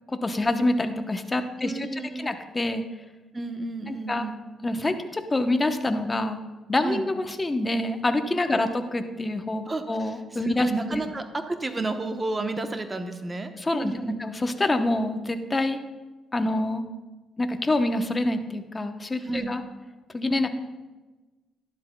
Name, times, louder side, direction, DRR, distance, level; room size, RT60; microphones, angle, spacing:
voice 1, 0.2-2.8 3.9-4.3 4.6-6.4 6.7-11.0 13.5-15.8 16.3-16.8 17.4-19.6 20.1-20.5, left 2 dB, 20° left, 7 dB, 0.9 m, -26 dB
voice 2, 1.6-2.3 3.3-4.4 6.8-7.0 8.5-8.7 9.7-14.2 19.2-19.5, right 3 dB, 25° right, 7 dB, 0.9 m, -32 dB
12.0 x 11.5 x 2.3 m, 1.2 s
cardioid pair, 90°, 0 cm